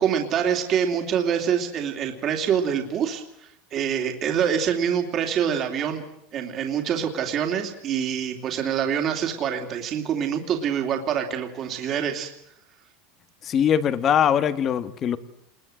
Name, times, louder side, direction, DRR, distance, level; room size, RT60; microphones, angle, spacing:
voice 1, 0.0-6.0 6.3-12.3, right 8 dB, 35° right, 3 dB, 2.7 m, -25 dB
voice 2, 13.4-15.2, left 9 dB, 30° left, 13 dB, 1.5 m, -21 dB
27.5 x 21.0 x 7.8 m, 0.76 s
supercardioid pair, 145°, 0 cm